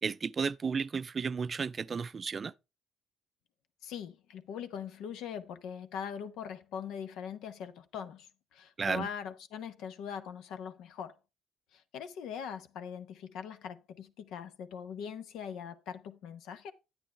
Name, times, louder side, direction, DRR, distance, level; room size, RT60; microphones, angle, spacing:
voice 1, 0.0-2.5 8.8-9.1, right 5 dB, 40° right, 0.4 m, -33 dB
voice 2, 3.8-11.2 11.7-16.7, left 7 dB, 75° left, 0.9 m, -41 dB
9.2 x 9.1 x 3.3 m
supercardioid pair, 65°, 0 cm